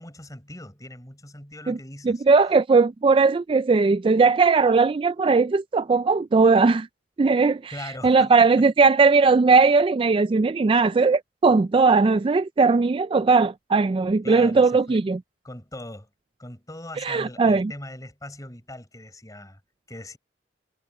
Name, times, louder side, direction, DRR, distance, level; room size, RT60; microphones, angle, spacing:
voice 1, 0.0-2.2 7.7-8.6 14.2-15.0 15.4-16.1 16.4-19.6 19.9-20.2, left 1 dB, 20° left, 5.7 m, -40 dB
voice 2, 2.0-6.9 7.2-7.7 8.0-15.2 17.0-17.7, right 4 dB, 30° right, 0.3 m, -19 dB
head